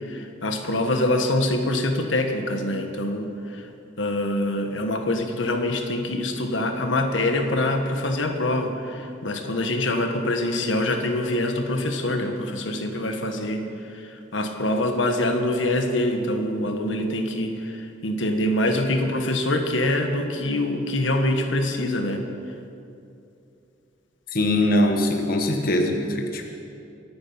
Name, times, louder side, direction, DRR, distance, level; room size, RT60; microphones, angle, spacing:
voice 1, 0.0-3.6 4.0-13.6 13.9-22.2, left 1 dB, 85° left, 5 dB, 1.5 m, -25 dB
voice 2, 24.3-26.5, left 1 dB, 50° left, 3 dB, 1.2 m, -22 dB
24.5 x 9.6 x 5.9 m, 2.6 s
head